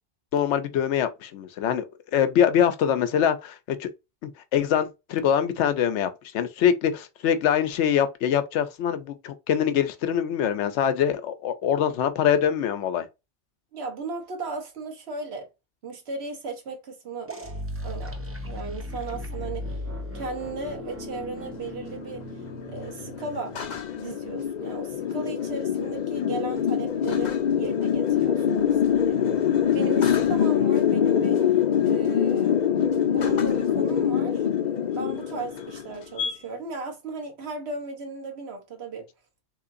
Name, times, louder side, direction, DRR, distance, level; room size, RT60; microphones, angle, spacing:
voice 1, 0.3-1.8 2.1-3.9 4.2-13.1, left 9 dB, 80° left, 0.9 m, -24 dB
voice 2, 13.7-15.5 15.8-17.3 17.8-19.8 20.1-22.2 22.7-23.5 23.9-29.2 29.7-32.6 33.1-34.5 34.9-39.1, right 3 dB, 65° right, 1.2 m, -36 dB
sound 1, 17.3-23.9, left 1 dB, 20° right, 0.3 m, -37 dB
sound 2, 19.9-36.3, left 9 dB, 50° left, 0.6 m, -24 dB
3.7 x 3.1 x 2.5 m
omnidirectional pair, 1.2 m